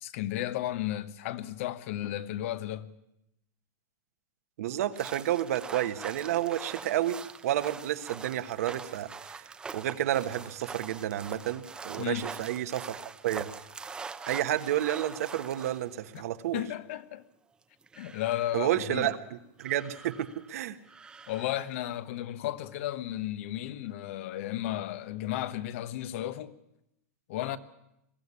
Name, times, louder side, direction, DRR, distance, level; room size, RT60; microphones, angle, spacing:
voice 1, 0.0-2.9 12.0-12.3 16.1-16.2 16.5-17.2 18.0-19.1 21.3-26.6 27.3-27.6, left 13 dB, 60° left, 1.2 m, -34 dB
voice 2, 4.6-7.2 7.4-13.5 14.3-16.6 18.5-19.2 19.6-20.8, right 12 dB, 75° right, 1.4 m, -30 dB
sound 1, 4.9-16.2 17.6-18.7 19.6-20.5 20.9-21.8, right 5 dB, 10° right, 0.7 m, -44 dB
22.0 x 14.5 x 9.8 m
supercardioid pair, 160°, 8 cm